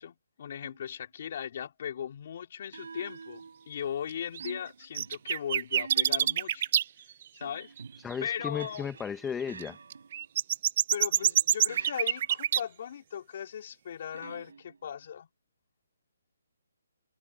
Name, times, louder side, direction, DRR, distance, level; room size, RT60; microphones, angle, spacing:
voice 1, 0.0-6.7 7.3-7.7 8.2-8.9 10.9-15.3, left 9 dB, 40° left, 3.8 m, -38 dB
sound 1, 0.6-1.0 2.7-4.0 4.4-6.6 7.4-10.4 11.2-12.4 14.1-15.0, right 5 dB, 70° right, 4.8 m, -48 dB
sound 2, 4.3-4.5 5.0-6.8 7.2-7.3 7.8-7.9 8.1-8.2 8.4-8.7 9.6-12.6, right 10 dB, 35° right, 0.5 m, -26 dB
voice 2, 8.0-9.8, left 7 dB, 5° left, 1.0 m, -35 dB
open air
hypercardioid pair, 170°, 0 cm